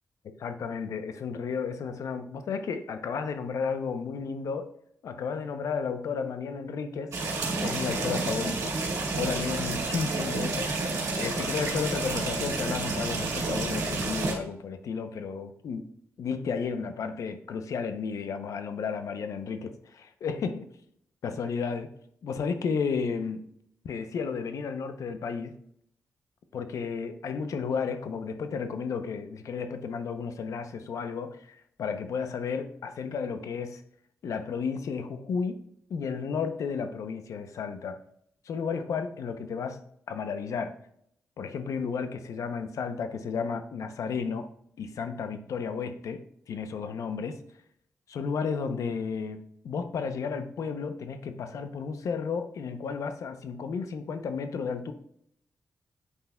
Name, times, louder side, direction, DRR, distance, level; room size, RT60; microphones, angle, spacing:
voice 1, 0.4-4.7 5.0-8.7 9.1-10.7 11.2-15.9 16.2-20.7 21.2-21.9 22.2-23.5 23.8-25.6 26.5-33.8 34.2-35.6 35.9-38.0 38.5-40.8 41.4-44.5 44.8-47.4 48.1-54.9, left 5 dB, 75° left, 9 dB, 0.6 m, -33 dB
sound 1, 7.1-14.3, right 3 dB, 80° right, 1.8 m, -30 dB
8.2 x 5.5 x 2.2 m, 0.68 s
cardioid pair, 65°, 5 cm